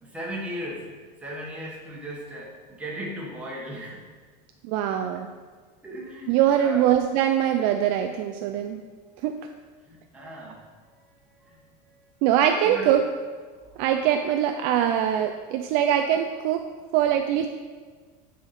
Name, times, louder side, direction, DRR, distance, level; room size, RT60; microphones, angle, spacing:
voice 1, 0.0-4.0 5.1-5.2 5.8-6.9 9.9-10.6 11.4-12.0 12.5-12.9, equal, 5° right, -4 dB, 1.3 m, -37 dB
voice 2, 4.7-5.3 6.3-8.8 9.2-9.4 12.2-13.0 13.8-16.6 16.9-17.5, right 10 dB, 45° right, 5 dB, 0.4 m, -22 dB
9.5 x 4.2 x 4.2 m, 1.5 s
supercardioid pair, 155°, 21 cm